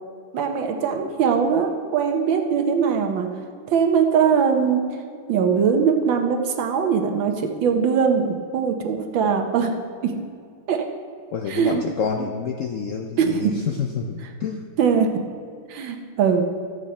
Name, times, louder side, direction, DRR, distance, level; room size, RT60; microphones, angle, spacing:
voice 1, 0.3-3.3 3.7-4.9 5.3-9.7 10.0-10.1 10.7-10.8 11.5-11.8 12.2-12.3 13.2-13.5 14.8-15.1 15.7-16.4, right 6 dB, 90° right, 4 dB, 1.7 m, -21 dB
voice 2, 11.3-14.6, left 6 dB, 75° left, 4 dB, 0.7 m, -28 dB
13.0 x 8.0 x 4.3 m, 2.2 s
omnidirectional pair, 2.0 m